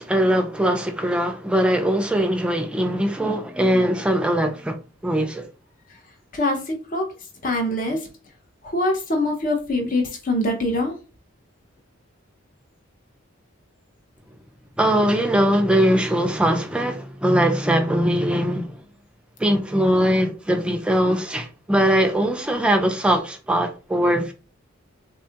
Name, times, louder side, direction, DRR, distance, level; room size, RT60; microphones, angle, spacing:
voice 1, 0.0-4.8 5.0-5.5 14.8-18.8 19.4-24.3, equal, 5° right, 0.4 m, -21 dB
voice 2, 6.3-7.2 7.4-8.1 8.6-11.0, left 1 dB, 45° left, 0.6 m, -24 dB
3.6 x 2.2 x 2.7 m
head